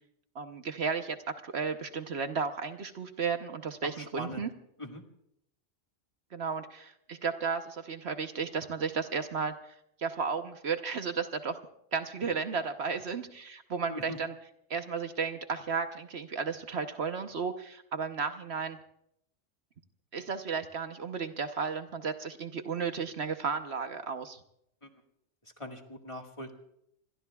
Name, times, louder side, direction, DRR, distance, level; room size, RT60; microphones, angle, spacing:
voice 1, 0.3-1.2 1.4-4.5 6.3-11.6 11.9-14.3 14.7-18.8 20.1-24.4, right 5 dB, 60° right, 8 dB, 1.1 m, -34 dB
voice 2, 4.0-4.5 4.8-5.0 13.9-14.2 25.6-26.5, left 1 dB, 25° left, 3 dB, 1.7 m, -41 dB
26.5 x 21.5 x 2.3 m, 0.74 s
omnidirectional pair, 1.3 m